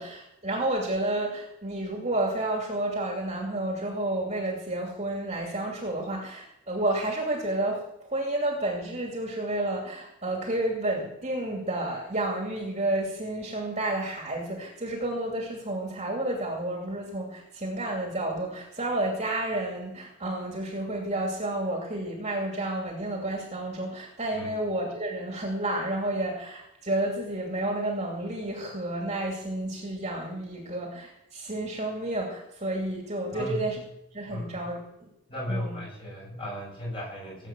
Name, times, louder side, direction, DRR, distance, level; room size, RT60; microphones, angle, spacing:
voice 1, 0.0-7.8 8.1-33.7 34.1-35.1 35.5-35.8, right 1 dB, 30° right, 0 dB, 2.7 m, -30 dB
voice 2, 33.3-33.8 34.3-34.7 35.3-37.5, equal, 25° left, -4 dB, 7.6 m, -36 dB
18.0 x 8.2 x 7.6 m, 0.81 s
head